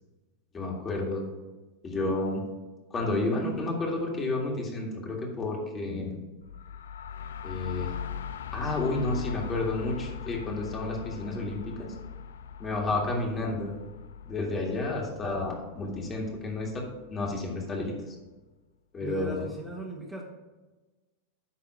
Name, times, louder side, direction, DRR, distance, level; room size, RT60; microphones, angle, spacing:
voice 1, 0.5-1.3 1.8-2.4 2.9-6.2 7.4-8.0 8.5-11.9 12.6-13.8 14.3-16.8 17.1-17.9 18.9-19.4, left 2 dB, 25° left, -1 dB, 1.9 m, -31 dB
sound 1, 6.4-18.1, left 7 dB, 70° left, 0.3 m, -41 dB
voice 2, 19.0-20.2, equal, 5° right, -3 dB, 1.3 m, -37 dB
10.5 x 3.5 x 4.9 m, 1.2 s
figure-of-eight pair, 90°, 0 cm